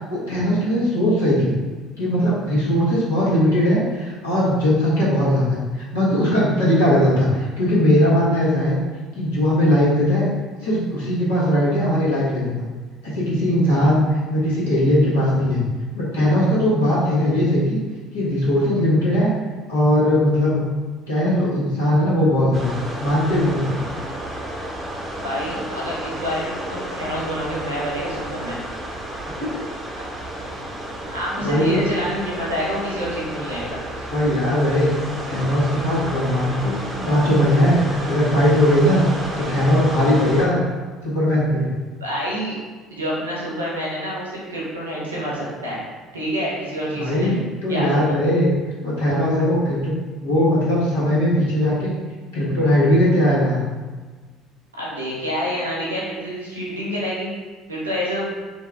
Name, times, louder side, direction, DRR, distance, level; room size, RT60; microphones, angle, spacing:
voice 1, 0.1-1.5 2.0-5.6 5.9-8.7 9.1-10.3 10.6-12.6 13.0-14.0 14.3-15.6 15.9-17.8 18.1-19.3 19.7-20.6 21.1-22.7 23.0-23.8 29.4-29.5 31.4-31.8 34.1-34.9 35.3-39.0 39.4-40.6 41.0-41.7 46.9-47.3 47.6-48.5 48.8-49.9 50.2-51.9 52.3-53.6, equal, 75° left, -7 dB, 1.3 m, -19 dB
sound 1, 22.5-40.5, right 1 dB, 25° right, 1.0 m, -31 dB
voice 2, 25.2-28.6 31.1-34.1 42.0-42.5 42.9-45.8 46.1-47.4 47.7-48.2 54.8-57.3 57.7-58.4, equal, 80° right, -6 dB, 1.2 m, -27 dB
5.1 x 2.3 x 3.3 m, 1.3 s
figure-of-eight pair, 60°, 0 cm